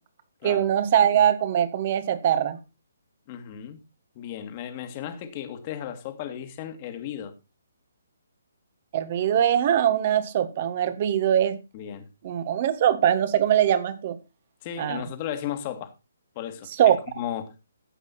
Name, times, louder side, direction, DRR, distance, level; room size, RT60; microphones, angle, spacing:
voice 1, 0.4-2.6 8.9-11.6 12.2-14.2 14.8-15.0 16.8-17.0, right 10 dB, 35° right, 1.8 m, -22 dB
voice 2, 3.3-3.8 4.2-7.4 11.7-12.1 14.6-15.9 16.4-17.5, left 10 dB, 30° left, 2.2 m, -35 dB
14.0 x 8.5 x 4.3 m
figure-of-eight pair, 135°, 0 cm